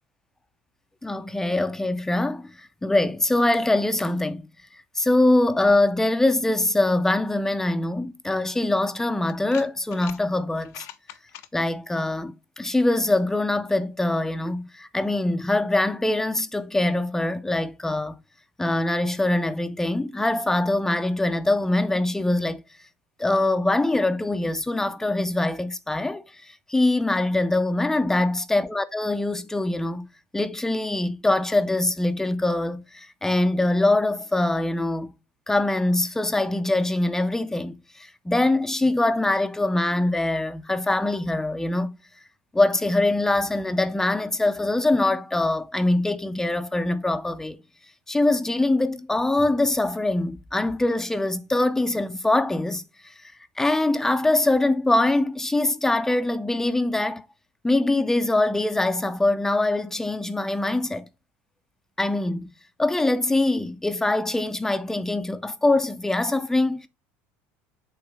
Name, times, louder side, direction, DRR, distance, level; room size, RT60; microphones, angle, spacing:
voice 1, 1.0-4.4 5.0-10.9 11.5-18.2 18.6-22.6 23.2-30.1 30.3-35.1 35.5-42.0 42.5-47.6 48.1-53.3 53.6-57.3 57.6-61.0 62.0-62.5 62.8-66.9, left 2 dB, 10° left, 0.6 m, -23 dB
sound 1, 9.3-10.2 10.6-11.5, left 13 dB, 65° left, 0.6 m, -42 dB
7.9 x 3.2 x 4.8 m
supercardioid pair, 115°, 5 cm